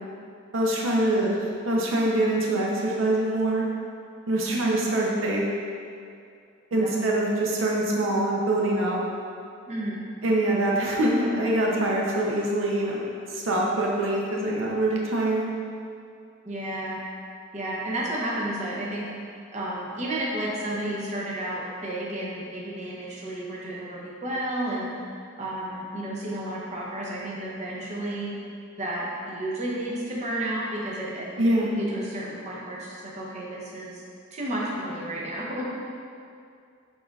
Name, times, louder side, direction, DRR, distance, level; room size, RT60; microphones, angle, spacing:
voice 1, 0.5-1.4 1.7-3.6 4.3-5.5 6.7-9.0 10.2-13.0 13.3-15.5 31.4-31.7, right 1 dB, 75° right, -3 dB, 0.6 m, -24 dB
voice 2, 4.5-4.8 6.7-6.9 9.7-10.0 16.4-17.0 17.5-19.1 19.5-24.9 25.4-28.3 28.8-34.0 34.3-35.7, right 1 dB, 35° right, -5 dB, 0.6 m, -32 dB
5.9 x 3.8 x 2.3 m, 2.4 s
head